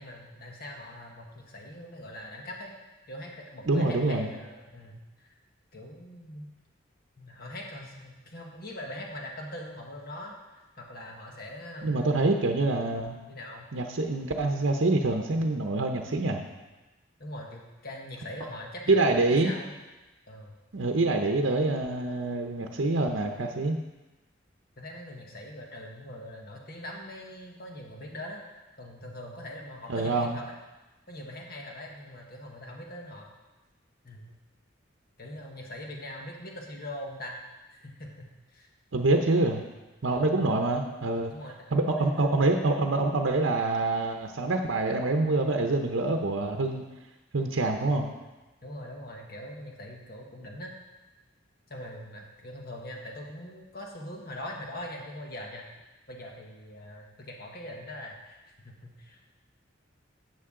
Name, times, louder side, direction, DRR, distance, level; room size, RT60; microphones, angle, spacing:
voice 1, 0.0-2.7 3.1-5.3 5.7-6.5 7.2-12.1 13.3-13.7 17.2-19.7 20.3-20.6 24.8-28.4 28.8-30.5 31.1-33.3 34.0-34.3 35.2-37.4 37.7-38.7 40.1-40.7 41.3-42.5 48.6-50.7 51.7-55.7 56.1-58.4 58.6-59.3, left 1 dB, 50° left, 0 dB, 1.5 m, -42 dB
voice 2, 3.7-4.3 11.8-13.2 13.7-16.4 18.9-19.5 20.7-23.8 29.9-30.4 38.9-39.6 40.0-41.3 41.7-46.8 47.3-48.1, right 2 dB, 70° right, 3 dB, 0.8 m, -26 dB
11.5 x 7.9 x 3.8 m, 1.1 s
head